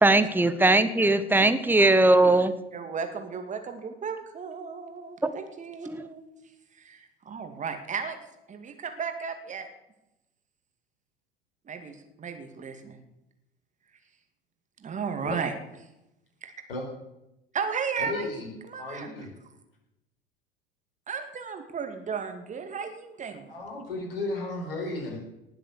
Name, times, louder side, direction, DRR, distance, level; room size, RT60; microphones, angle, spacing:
voice 1, 0.0-2.5 5.2-5.3 5.9-6.0, right 2 dB, 5° right, 11 dB, 1.0 m, -20 dB
voice 2, 2.7-6.2 6.8-8.2 8.5-9.7 11.7-13.0 14.8-15.5 16.4-16.5 17.5-18.3 18.7-19.1 21.1-23.5, right 6 dB, 25° right, 6 dB, 2.4 m, -34 dB
voice 3, 18.0-18.5 18.8-19.3 23.5-25.2, left 2 dB, 75° left, 0 dB, 5.1 m, -34 dB
19.5 x 7.6 x 6.8 m, 0.89 s
figure-of-eight pair, 80°, 29 cm